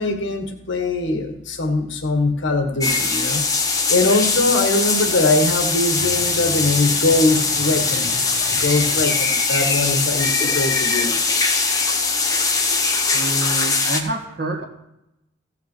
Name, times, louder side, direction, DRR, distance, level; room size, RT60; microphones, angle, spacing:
voice 1, 0.0-3.4 3.9-8.2 8.6-11.1, left 2 dB, 80° left, 4 dB, 1.4 m, -21 dB
sound 1, 2.8-14.0, left 4 dB, 20° left, 1.0 m, -21 dB
sound 2, 6.0-9.3, left 5 dB, 50° left, 0.7 m, -35 dB
voice 2, 13.1-14.7, right 2 dB, 55° right, 2 dB, 1.8 m, -27 dB
15.5 x 5.8 x 6.6 m, 0.84 s
head